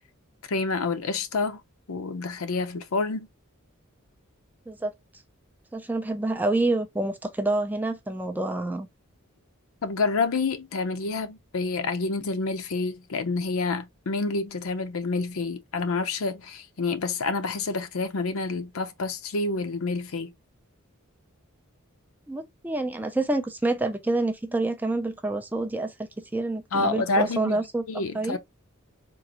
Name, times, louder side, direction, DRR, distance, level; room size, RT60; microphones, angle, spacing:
voice 1, 0.5-1.6 1.9-3.3 9.8-20.3 26.7-27.6 27.9-28.4, left 3 dB, 70° left, 0.6 m, -28 dB
voice 2, 5.7-8.9 22.3-27.8 28.1-28.4, right 2 dB, 10° right, 0.4 m, -27 dB
3.8 x 2.5 x 2.8 m
head